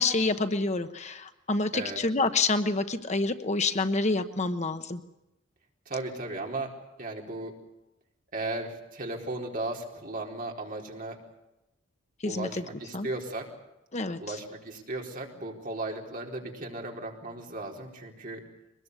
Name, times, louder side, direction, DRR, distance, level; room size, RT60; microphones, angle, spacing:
voice 1, 0.0-5.0 12.2-12.5 12.9-13.1 13.9-14.2, left 3 dB, 35° left, 9 dB, 1.0 m, -27 dB
voice 2, 5.9-7.6 8.3-11.2 12.3-13.5 14.2-18.4, right 2 dB, 45° right, 0 dB, 4.4 m, -36 dB
23.5 x 21.0 x 8.2 m, 0.95 s
head